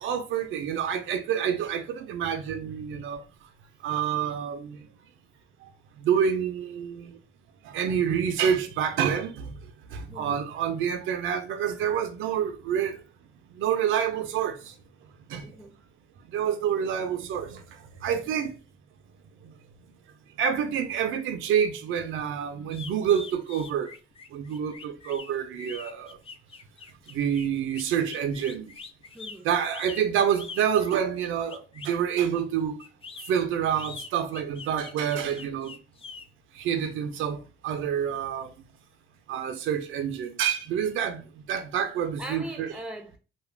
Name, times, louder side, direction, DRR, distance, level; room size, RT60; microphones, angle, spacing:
voice 1, 0.0-3.2 3.8-4.9 5.6-5.7 6.0-7.2 7.6-9.6 9.9-13.0 13.6-14.7 15.3-15.5 16.3-18.6 19.4-19.5 20.4-23.9 24.3-26.2 27.1-28.7 29.4-32.8 33.3-35.7 36.5-38.5 39.3-42.7, right 8 dB, 85° right, 0.5 m, -28 dB
voice 2, 10.0-10.4 15.4-15.8 29.1-29.5 42.2-43.2, right 1 dB, 5° right, 0.7 m, -41 dB
sound 1, 22.7-32.0 32.8-36.3, left 4 dB, 30° left, 0.3 m, -44 dB
2.4 x 2.2 x 3.2 m
cardioid pair, 90°, 20 cm